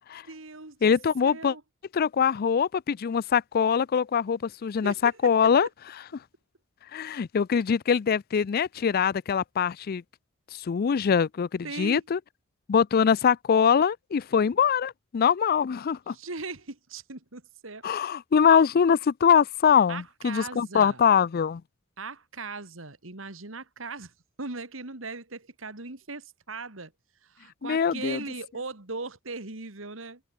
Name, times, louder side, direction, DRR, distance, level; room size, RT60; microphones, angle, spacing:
voice 1, 0.2-0.9 1.2-1.6 4.8-5.5 11.6-12.0 16.1-17.9 19.9-21.0 22.0-24.1 24.4-26.9 27.2-30.2, right 3 dB, 75° right, 2.5 m, -39 dB
voice 2, 0.8-1.5 1.9-5.7 6.9-10.0 10.6-12.2 12.7-16.1 17.8-21.6 27.6-28.2, left 7 dB, 50° left, 0.4 m, -23 dB
head